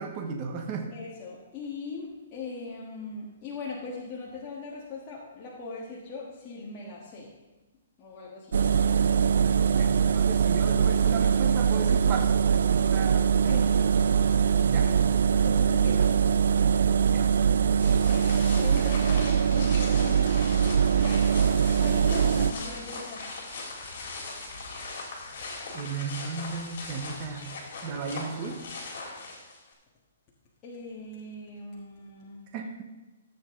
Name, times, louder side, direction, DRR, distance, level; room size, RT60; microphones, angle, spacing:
voice 1, 0.0-1.0 9.7-12.4 12.7-13.7 14.6-14.9 17.1-17.3 25.7-27.6 27.8-28.6 32.5-32.8, right 5 dB, 25° right, 3 dB, 1.0 m, -35 dB
voice 2, 0.9-7.3 8.0-9.1 13.5-13.8 14.2-14.9 15.3-16.2 17.0-17.4 17.8-20.5 21.8-23.4 30.6-32.4, left 3 dB, 20° left, -5 dB, 1.6 m, -41 dB
Engine, 8.5-22.5, right 7 dB, 75° right, 0.6 m, -22 dB
sound 1, 17.8-29.7, left 3 dB, 45° left, 3.4 m, -40 dB
14.5 x 8.0 x 3.8 m, 1.1 s
hypercardioid pair, 165°, 0 cm